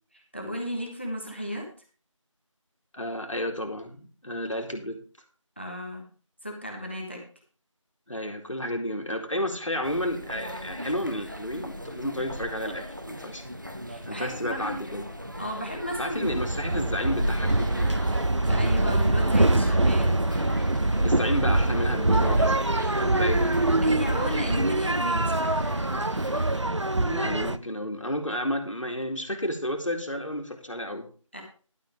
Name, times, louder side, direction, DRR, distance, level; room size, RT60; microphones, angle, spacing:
voice 1, 0.1-1.7 5.6-6.1 6.4-7.2 13.9-14.8 15.4-16.3 18.5-20.2 23.8-25.7 31.3-31.4, equal, 20° left, 1 dB, 1.5 m, -34 dB
voice 2, 2.9-5.0 8.1-13.5 14.1-15.1 16.0-17.9 21.0-22.7 23.0-23.6 27.0-31.1, left 1 dB, 70° left, 2 dB, 2.3 m, -31 dB
sound 1, 9.8-26.6, equal, 35° right, 1.0 m, -37 dB
sound 2, 16.2-27.6, right 2 dB, 60° right, 0.7 m, -24 dB
11.5 x 5.4 x 6.3 m, 0.39 s
figure-of-eight pair, 180°, 17 cm